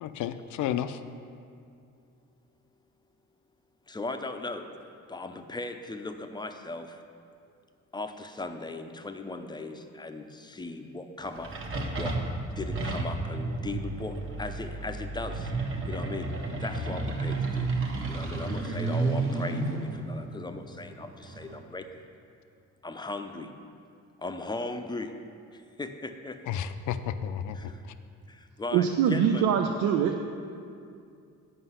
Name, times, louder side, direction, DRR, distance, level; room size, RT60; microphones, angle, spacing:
voice 1, 0.0-1.0 26.5-27.7, left 9 dB, 75° left, 11 dB, 0.5 m, -32 dB
voice 2, 3.9-4.7 5.1-7.0 7.9-12.2 12.6-17.7 18.1-22.0 22.8-23.5 24.2-25.1 25.5-26.4 27.5-27.8 28.3-29.4, left 2 dB, 15° left, 7 dB, 0.5 m, -38 dB
sound 1, 11.2-21.6, right 3 dB, 45° right, 1.1 m, -32 dB
voice 3, 28.7-30.1, right 8 dB, 85° right, 4 dB, 0.5 m, -23 dB
7.9 x 5.5 x 5.6 m, 2.4 s
cardioid pair, 90°, 30 cm